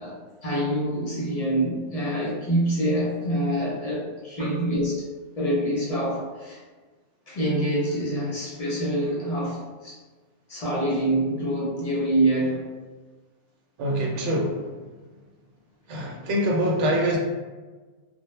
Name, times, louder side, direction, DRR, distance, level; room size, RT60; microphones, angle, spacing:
voice 1, 0.0-5.0 5.4-6.6 7.3-10.0 10.5-12.6, right 1 dB, 50° left, -5 dB, 0.5 m, -26 dB
voice 2, 13.8-14.7 15.9-17.2, equal, 75° right, -1 dB, 0.9 m, -25 dB
2.1 x 2.0 x 3.1 m, 1.3 s
omnidirectional pair, 1.2 m